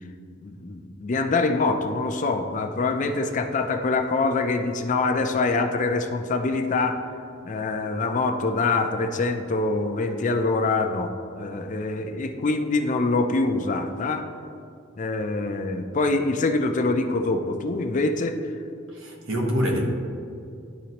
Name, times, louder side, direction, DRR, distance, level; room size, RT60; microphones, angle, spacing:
voice 1, 0.4-7.0 7.4-14.2 15.0-18.4, left 3 dB, 40° left, 6 dB, 0.4 m, -25 dB
voice 2, 18.9-19.8, equal, 90° right, 0 dB, 1.2 m, -25 dB
11.5 x 4.0 x 2.9 m, 2.5 s
head